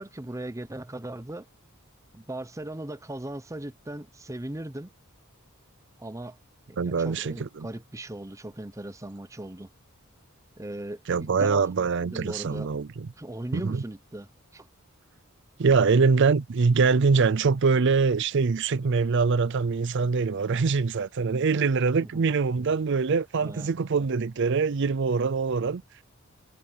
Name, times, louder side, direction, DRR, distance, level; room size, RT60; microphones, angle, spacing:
voice 1, 0.0-1.5 2.1-4.9 6.0-6.4 6.7-9.7 10.6-11.6 12.0-12.7 13.2-14.7 22.0-22.3 23.4-23.8, right 1 dB, 15° right, 0.7 m, -38 dB
voice 2, 6.8-7.7 11.1-13.1 13.5-13.8 15.6-25.8, right 4 dB, 55° right, 0.5 m, -24 dB
head